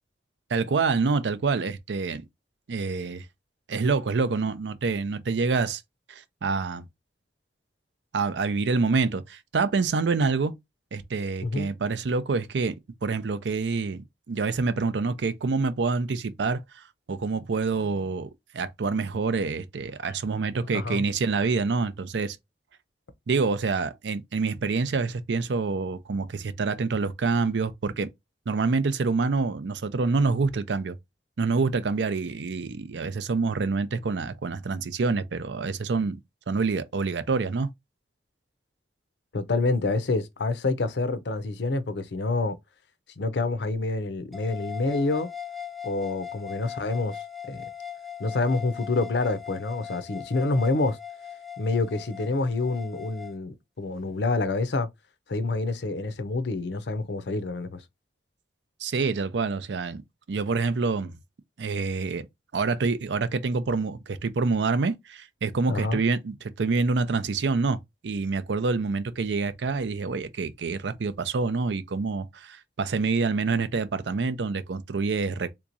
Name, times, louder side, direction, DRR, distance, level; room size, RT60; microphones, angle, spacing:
voice 1, 0.5-2.3 2.7-3.3 3.7-5.8 6.1-6.8 8.1-10.6 10.9-14.0 14.3-22.4 23.3-28.1 28.5-31.0 31.4-36.2 36.5-37.7 58.8-60.0 60.3-61.1 61.6-62.3 62.5-67.8 68.0-75.5, right 4 dB, 85° right, 0.5 m, -27 dB
voice 2, 20.7-21.0 39.3-42.6 43.2-45.3 45.8-47.2 47.5-47.6 48.2-51.0 51.6-54.9 55.3-57.8 65.7-66.0, left 3 dB, 70° left, 0.6 m, -27 dB
sound 1, 44.3-53.4, left 8 dB, ahead, 0.4 m, -40 dB
3.5 x 2.9 x 2.5 m
head